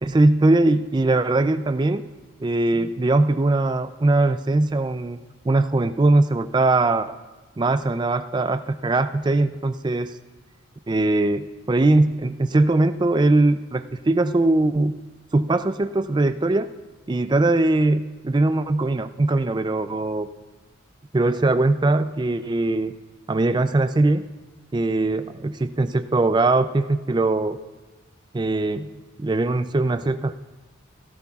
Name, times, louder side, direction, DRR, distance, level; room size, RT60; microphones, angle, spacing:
voice 1, 0.0-2.0 2.4-5.2 5.5-7.2 7.6-10.2 10.9-14.9 15.3-16.7 17.1-20.3 21.1-22.9 23.3-24.2 24.7-27.6 28.3-28.9 29.2-30.3, right 2 dB, 20° right, 11 dB, 0.3 m, -21 dB
17.0 x 13.5 x 2.4 m, 1.3 s
head